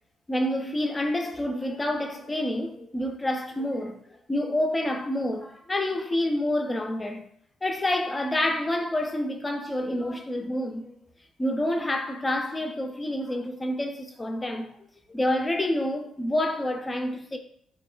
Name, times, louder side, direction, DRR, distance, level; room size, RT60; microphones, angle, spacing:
voice 1, 0.3-4.0 4.3-7.2 7.6-10.9 11.4-14.7 15.1-17.4, left 1 dB, 20° left, 0.4 m, -28 dB
3.1 x 2.0 x 2.3 m
figure-of-eight pair, 45°, 0 cm